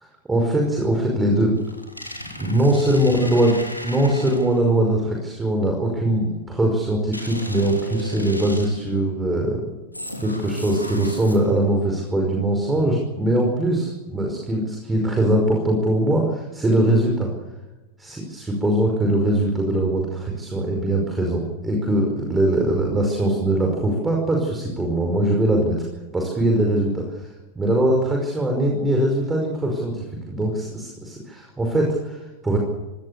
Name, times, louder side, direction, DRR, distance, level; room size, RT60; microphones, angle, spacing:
voice 1, 0.3-1.5 2.4-3.5 3.8-9.6 10.2-17.3 18.0-25.9 26.1-32.6, right 1 dB, 10° right, 1 dB, 5.3 m, -21 dB
sound 1, 1.6-4.7 7.1-9.0 9.9-11.7, equal, 90° left, 3.2 m, -36 dB
25.5 x 18.5 x 6.9 m, 1.1 s
figure-of-eight pair, 90°, 0 cm